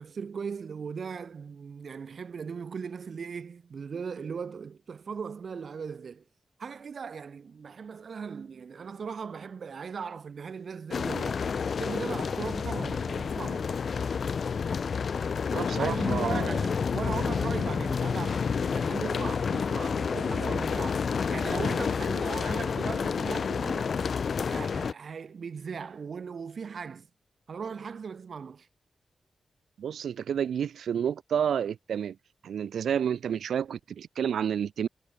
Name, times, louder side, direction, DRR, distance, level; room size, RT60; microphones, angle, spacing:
voice 1, 0.0-6.2 6.6-11.4 11.8-13.8 15.8-23.9 24.5-27.1 27.5-28.7, right 6 dB, 55° right, 5.3 m, -38 dB
sound 1, 10.9-24.9, left 6 dB, 55° left, 5.7 m, -29 dB
voice 2, 15.5-16.6 20.1-20.6 29.8-32.2 32.4-34.9, right 8 dB, 90° right, 6.8 m, -30 dB
wide cardioid pair, 110°, 0 cm